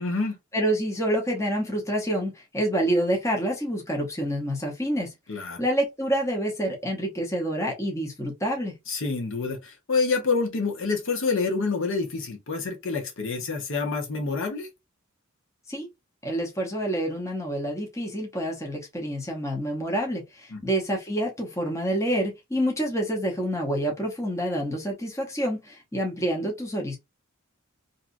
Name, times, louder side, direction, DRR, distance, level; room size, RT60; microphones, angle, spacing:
voice 1, 0.0-0.4 5.3-5.6 8.9-14.7 20.5-20.6, left 4 dB, 65° left, 0.9 m, -27 dB
voice 2, 0.5-5.1 5.6-8.7 15.7-15.9 16.2-27.0, right 1 dB, 15° left, 0.8 m, -27 dB
2.8 x 2.4 x 2.5 m
head